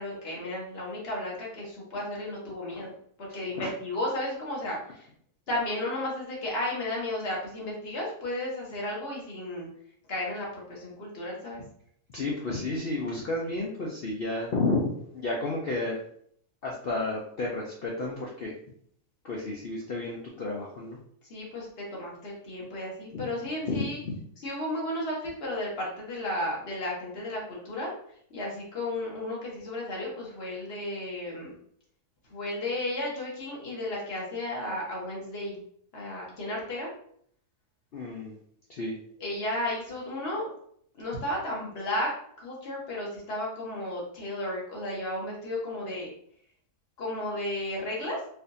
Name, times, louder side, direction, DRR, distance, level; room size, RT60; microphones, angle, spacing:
voice 1, 0.0-2.9 3.2-5.1 5.5-9.7 10.1-11.6 21.3-24.0 24.4-27.9 28.3-31.5 32.3-35.6 35.9-36.9 39.2-40.5 41.0-46.1 47.0-48.2, left 1 dB, 40° left, -3 dB, 1.3 m, -33 dB
voice 2, 12.1-16.0 16.6-18.5 19.2-21.0 23.1-23.3 23.7-24.2 37.9-38.4 38.7-39.0, left 2 dB, 75° left, -3 dB, 0.5 m, -31 dB
4.3 x 2.6 x 2.6 m, 0.64 s
omnidirectional pair, 1.7 m